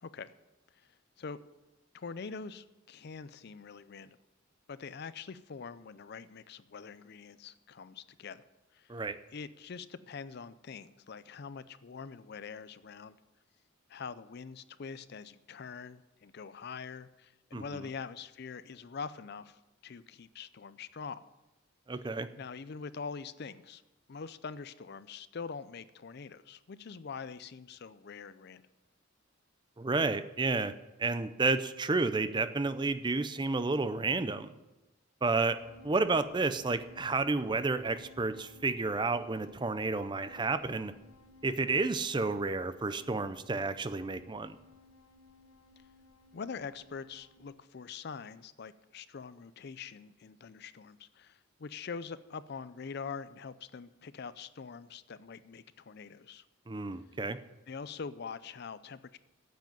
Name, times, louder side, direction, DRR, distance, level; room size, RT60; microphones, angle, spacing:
voice 1, 0.0-0.3 0.8-0.9 1.2-1.4 1.9-4.2 4.7-8.4 8.7-8.9 9.3-13.2 13.9-21.2 22.4-23.8 24.1-28.6 46.3-56.4 57.7-59.2, left 5 dB, 55° left, 15 dB, 0.5 m, -44 dB
voice 2, 17.5-17.9 21.9-22.3 29.8-30.7 31.0-34.5 35.2-35.6 35.8-40.9 41.4-44.6 56.7-57.4, right 3 dB, 25° right, 12 dB, 0.5 m, -31 dB
sound 1, 35.6-47.5, left 3 dB, 75° left, 1.2 m, -58 dB
9.2 x 7.5 x 9.2 m, 1.0 s
head